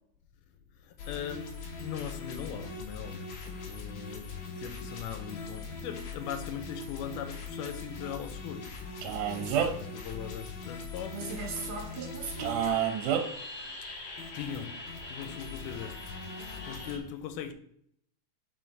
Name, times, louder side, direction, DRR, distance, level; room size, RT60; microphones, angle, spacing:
voice 1, 0.8-8.7 9.3-11.4 14.0-14.8 15.1-16.0 16.4-17.5, left 8 dB, 85° left, 2.1 m, -40 dB
sound 1, 1.0-17.0, left 4 dB, 65° left, 1.3 m, -41 dB
Male speech man speaking, 9.0-9.9 12.4-13.2, right 9 dB, 80° right, 2.3 m, -28 dB
voice 2, 9.3-9.6 11.1-12.9, right 5 dB, 55° right, 2.8 m, -39 dB
5.8 x 4.9 x 4.0 m
omnidirectional pair, 3.7 m